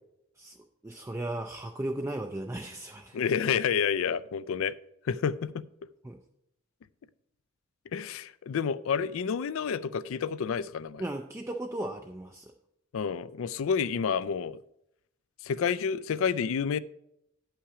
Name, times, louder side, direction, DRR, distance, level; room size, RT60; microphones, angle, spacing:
voice 1, 0.4-3.2 6.0-6.2 11.0-12.5, right 1 dB, 10° right, 0.3 m, -36 dB
voice 2, 3.1-4.8 5.0-5.5 7.9-11.0 12.9-14.6 15.4-16.8, left 6 dB, 70° left, 0.3 m, -29 dB
9.8 x 5.7 x 4.9 m
head